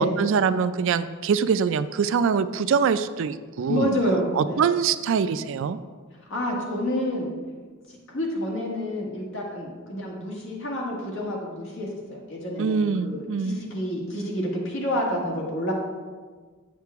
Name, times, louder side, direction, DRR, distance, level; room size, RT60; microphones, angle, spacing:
voice 1, 0.0-3.9 4.4-5.8 12.6-13.6, right 6 dB, 65° right, 13 dB, 0.4 m, -24 dB
voice 2, 3.7-4.7 6.3-7.3 8.1-15.7, equal, 65° left, -2 dB, 1.8 m, -28 dB
7.5 x 7.5 x 3.5 m, 1.5 s
head